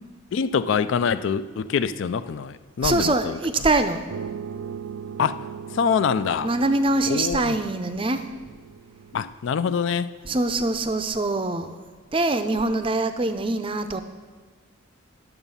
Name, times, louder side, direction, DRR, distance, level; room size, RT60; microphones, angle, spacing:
voice 1, 0.3-3.4 5.2-5.4 5.7-6.5 7.1-7.6 9.1-10.1, left 6 dB, 60° left, 14 dB, 0.3 m, -25 dB
voice 2, 2.8-4.0 6.4-8.2 10.2-11.8 12.1-14.0, right 2 dB, 25° right, 9 dB, 0.5 m, -23 dB
sound 1, 4.1-9.3, right 7 dB, 85° right, 0.4 m, -38 dB
10.5 x 7.0 x 5.5 m, 1.5 s
head